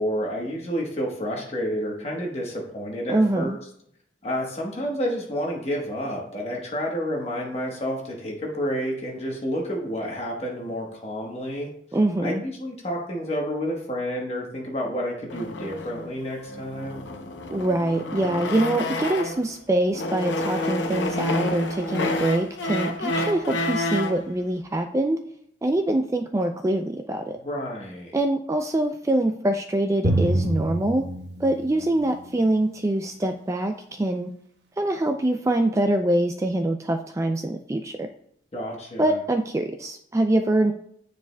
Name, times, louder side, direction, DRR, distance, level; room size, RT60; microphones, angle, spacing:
voice 1, 0.0-3.6 4.2-11.7 12.2-17.0 27.3-28.1 38.5-39.2, equal, 35° left, -1 dB, 1.1 m, -30 dB
voice 2, 3.1-3.6 11.9-12.4 17.5-25.2 25.6-27.4 28.1-31.0 31.4-34.3 34.8-38.1 39.0-40.7, right 1 dB, 15° right, 6 dB, 0.3 m, -24 dB
sound 1, 15.3-19.5 19.9-24.2, left 1 dB, 85° left, 0.7 m, -29 dB
Drum, 30.0-32.4, right 1 dB, 75° right, 0.9 m, -27 dB
9.3 x 4.7 x 2.2 m, 0.71 s
head